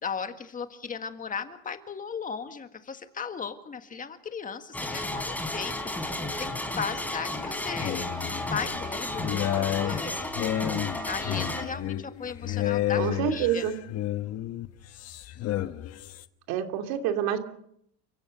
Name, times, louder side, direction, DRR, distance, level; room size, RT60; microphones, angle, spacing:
voice 1, 0.0-10.3 11.0-13.7, left 6 dB, 20° left, 8 dB, 1.8 m, -37 dB
sound 1, 4.7-11.6, left 1 dB, 5° left, 3.6 m, -33 dB
sound 2, 7.4-16.3, left 13 dB, 45° left, 1.3 m, -31 dB
voice 2, 12.9-13.8 16.5-17.4, right 10 dB, 75° right, 5 dB, 3.1 m, -27 dB
30.0 x 16.5 x 6.6 m, 0.71 s
cardioid pair, 150°, 36 cm